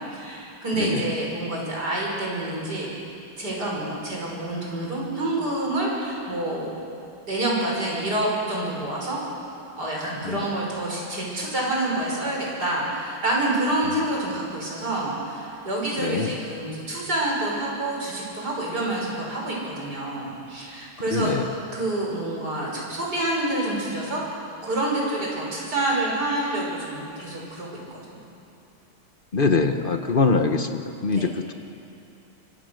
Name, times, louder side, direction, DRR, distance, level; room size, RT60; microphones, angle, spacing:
voice 1, 0.1-2.9 3.4-6.7 7.3-9.2 9.8-21.3 21.7-24.2 24.6-28.2 31.1-31.3, right 1 dB, 45° right, -3 dB, 6.2 m, -27 dB
voice 2, 0.8-1.1 10.2-10.5 13.8-14.0 16.0-16.3 21.1-21.5 29.3-31.5, left 4 dB, 40° left, 7 dB, 0.8 m, -24 dB
25.0 x 25.0 x 6.6 m, 2.6 s
omnidirectional pair, 2.3 m